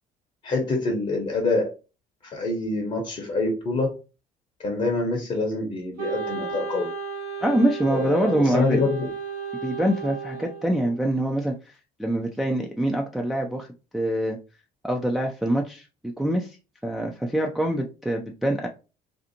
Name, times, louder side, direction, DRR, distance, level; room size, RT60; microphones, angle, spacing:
voice 1, 0.4-1.7 2.2-3.9 4.6-6.9 7.9-9.1, left 3 dB, 35° left, 1 dB, 0.8 m, -26 dB
Wind instrument woodwind instrument, 6.0-11.1, right 6 dB, 65° right, 0.8 m, -34 dB
voice 2, 7.4-8.8 9.6-13.7 13.9-14.4 14.8-16.6 16.8-18.7, right 1 dB, ahead, 1 dB, 0.4 m, -25 dB
2.6 x 2.4 x 2.7 m, 0.31 s
figure-of-eight pair, 55°, 20 cm